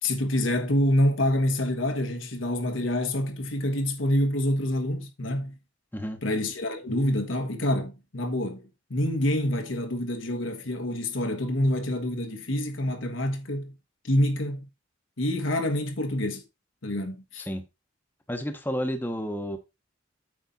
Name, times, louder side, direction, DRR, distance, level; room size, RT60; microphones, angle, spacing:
voice 1, 0.0-5.5 6.2-13.7 14.0-14.7 15.2-16.4 16.8-17.5, left 1 dB, 80° left, 1.4 m, -27 dB
voice 2, 18.3-19.6, equal, 10° left, 1.0 m, -31 dB
8.4 x 5.4 x 4.1 m
head